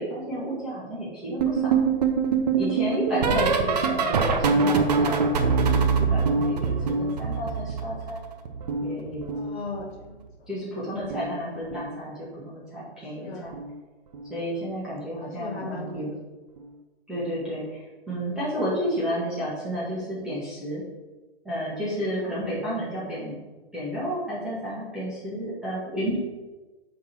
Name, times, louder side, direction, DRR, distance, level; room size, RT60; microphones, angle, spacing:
voice 1, 0.0-1.8 2.5-6.7 7.0-8.2 8.8-9.2 10.5-13.5 14.3-16.1 17.1-17.8 18.1-20.8 21.4-23.4 23.7-26.2, equal, ahead, -10 dB, 1.7 m, -31 dB
sound 1, 1.4-8.2 8.4-10.0 11.0-11.4 11.6-12.0 13.5-13.8 14.1-14.4 16.0-16.1, right 5 dB, 40° right, 0.7 m, -24 dB
voice 2, 3.2-3.5 9.3-10.2 11.4-11.5 13.2-13.5 15.2-16.2 18.3-18.4, left 3 dB, 70° left, 1 dB, 2.0 m, -37 dB
7.5 x 3.9 x 6.0 m, 1.2 s
hypercardioid pair, 165°, 32 cm